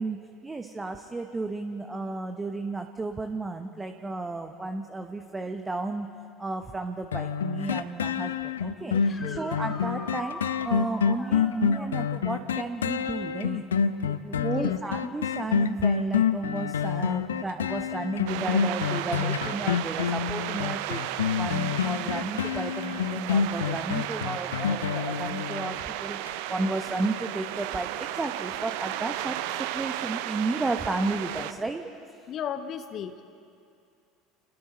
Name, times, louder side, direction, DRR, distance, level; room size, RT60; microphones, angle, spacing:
voice 1, 0.0-6.1 6.4-10.4 10.6-13.6 14.0-31.8 32.1-32.2, right 3 dB, 15° right, 6 dB, 1.1 m, -33 dB
sound 1, 7.1-25.8 26.3-26.4, left 7 dB, 75° left, 0.6 m, -27 dB
voice 2, 8.9-9.6 14.3-14.8 17.0-17.2 17.6-17.8 32.3-33.2, left 9 dB, 45° left, 8 dB, 1.0 m, -36 dB
sound 2, 8.9-11.9 15.2-15.3 17.4-17.5 23.7-23.8, left 3 dB, 20° left, 2.1 m, -42 dB
sound 3, 18.3-31.5, right 13 dB, 65° right, 0.7 m, -34 dB
29.5 x 20.5 x 4.3 m, 2.4 s
figure-of-eight pair, 70°, 0 cm